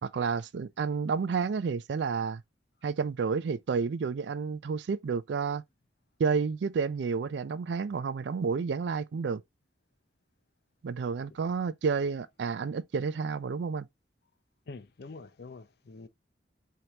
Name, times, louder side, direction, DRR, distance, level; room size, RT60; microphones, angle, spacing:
voice 1, 0.0-2.4 2.8-5.6 6.2-9.4 10.8-13.9, right 5 dB, 75° right, 0.4 m, -30 dB
voice 2, 14.7-16.1, left 3 dB, 60° left, 0.5 m, -45 dB
5.1 x 2.9 x 2.8 m
head